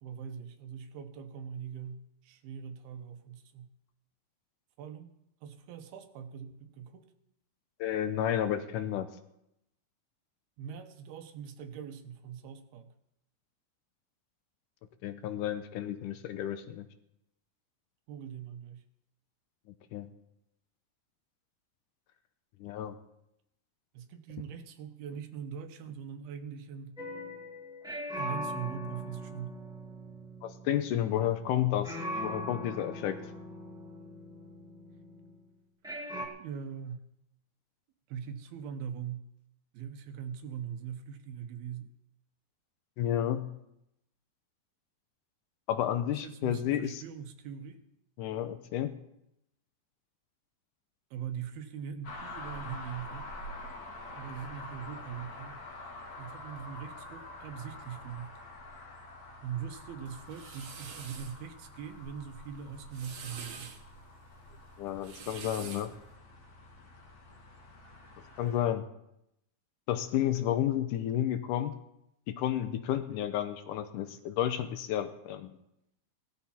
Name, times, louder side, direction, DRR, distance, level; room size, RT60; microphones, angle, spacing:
voice 1, 0.0-3.7 4.8-5.1 5.4-7.1 10.6-12.9 18.1-18.8 23.9-27.0 28.1-29.6 36.4-37.1 38.1-39.3 39.7-41.9 46.1-47.8 51.1-53.3 54.2-55.6 56.2-58.4 59.4-63.8, right 7 dB, 85° right, 7 dB, 3.0 m, -42 dB
voice 2, 7.8-9.1 15.0-16.9 19.9-20.1 22.6-23.0 30.4-33.2 43.0-43.5 45.7-47.0 48.2-48.9 64.8-65.9 68.4-68.9 69.9-71.7 72.3-75.6, left 11 dB, 75° left, 9 dB, 2.0 m, -31 dB
sound 1, 27.0-31.6 31.8-35.4 35.8-36.3, equal, 5° right, 0.4 m, -40 dB
sound 2, 52.0-68.6, left 2 dB, 50° left, 3.0 m, -47 dB
sound 3, 60.1-61.4 62.7-63.8 64.9-66.0, right 6 dB, 55° right, 1.9 m, -46 dB
17.5 x 13.5 x 4.4 m, 0.83 s
omnidirectional pair, 4.3 m